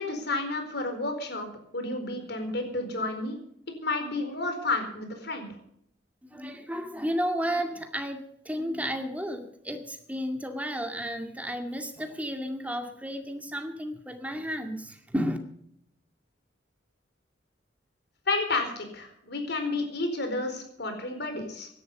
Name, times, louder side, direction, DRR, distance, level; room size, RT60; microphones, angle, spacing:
voice 1, 0.0-1.5 1.7-3.4 3.8-5.5 18.3-21.7, left 2 dB, 65° left, 5 dB, 4.4 m, -31 dB
voice 2, 6.2-15.4, equal, 10° right, 5 dB, 2.1 m, -32 dB
17.0 x 11.5 x 5.4 m, 0.72 s
head